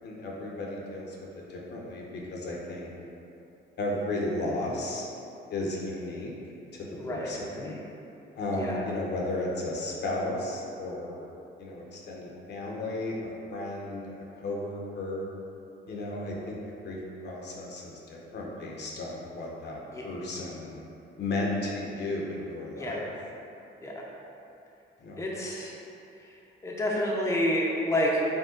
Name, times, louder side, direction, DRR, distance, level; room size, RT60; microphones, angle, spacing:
voice 1, 0.0-2.9 3.8-5.1 5.5-6.3 6.7-7.7 8.4-11.3 11.6-14.1 14.4-15.3 15.9-20.8 21.2-23.0 25.0-25.2, left 2 dB, 60° left, -3 dB, 0.8 m, -34 dB
voice 2, 7.0-7.8 8.5-8.8 19.9-20.1 22.7-23.1 23.8-24.0 25.2-25.7 26.2-28.3, equal, 15° left, -4 dB, 0.6 m, -30 dB
5.3 x 2.2 x 3.8 m, 2.8 s
cardioid pair, 90°, 20 cm